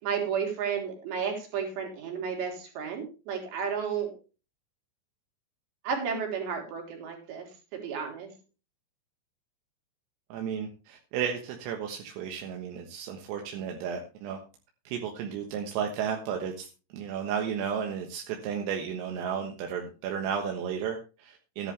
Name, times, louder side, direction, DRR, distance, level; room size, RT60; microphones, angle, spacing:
voice 1, 0.0-4.1 5.8-7.5 7.7-8.3, right 6 dB, 60° right, 2 dB, 5.5 m, -32 dB
voice 2, 10.3-14.4 14.9-16.7 16.9-21.7, right 7 dB, 85° right, 3 dB, 4.0 m, -33 dB
14.0 x 11.0 x 3.4 m, 0.33 s
omnidirectional pair, 5.8 m